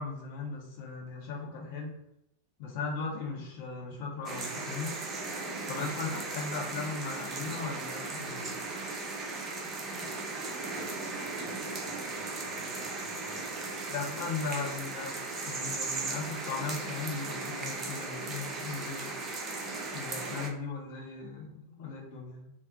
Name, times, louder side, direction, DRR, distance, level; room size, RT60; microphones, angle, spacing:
voice 1, 0.0-2.0 2.6-5.0 5.7-8.5 13.9-15.1 15.4-19.1 19.9-22.5, left 4 dB, 50° left, -1 dB, 0.7 m, -37 dB
sound 1, 4.3-20.5, right 3 dB, 25° right, 0.4 m, -37 dB
voice 2, 10.2-14.9, equal, 50° right, -1 dB, 0.8 m, -53 dB
2.6 x 2.0 x 2.6 m, 0.81 s
figure-of-eight pair, 90°, 0 cm